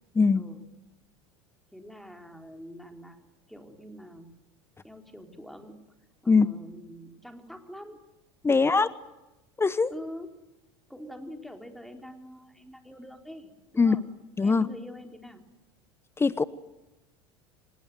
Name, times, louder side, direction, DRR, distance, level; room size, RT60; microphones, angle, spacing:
voice 1, 0.2-0.5 6.3-6.5 8.4-8.9 9.6-9.9 13.8-14.0 14.4-14.7 16.2-16.4, left 4 dB, 15° left, 16 dB, 1.0 m, -21 dB
voice 2, 1.7-4.3 4.8-5.9 6.2-8.1 8.5-8.9 9.9-10.4 10.9-14.0 14.4-15.4, equal, ahead, 3 dB, 4.2 m, -45 dB
25.5 x 20.5 x 9.5 m, 1.0 s
hypercardioid pair, 80°, 14 cm